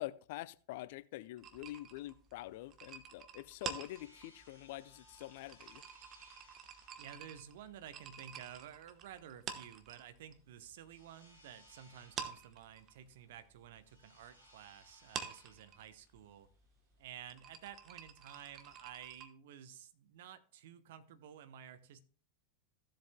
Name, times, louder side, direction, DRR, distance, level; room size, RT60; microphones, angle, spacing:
voice 1, 0.0-5.8, left 16 dB, 50° left, 0.5 m, -46 dB
sound 1, 1.4-10.4 10.7-11.7 12.0-19.3, right 7 dB, 30° right, 1.1 m, -48 dB
sound 2, 3.5-17.8, left 1 dB, 85° right, 4.2 m, -66 dB
voice 2, 7.0-16.5 17.0-22.0, right 9 dB, 55° right, 0.9 m, -52 dB
15.5 x 7.6 x 2.2 m
figure-of-eight pair, 90°, 0 cm